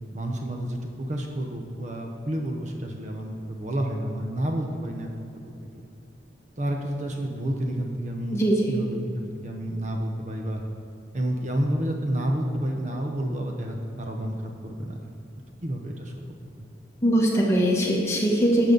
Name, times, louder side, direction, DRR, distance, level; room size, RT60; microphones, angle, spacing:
voice 1, 0.1-5.1 5.4-5.8 6.6-10.6 11.1-15.1 15.6-16.7, right 1 dB, 40° right, 2 dB, 0.8 m, -30 dB
voice 2, 8.3-8.7 17.0-18.7, equal, 15° left, -3 dB, 1.4 m, -21 dB
12.0 x 6.9 x 3.9 m, 2.8 s
head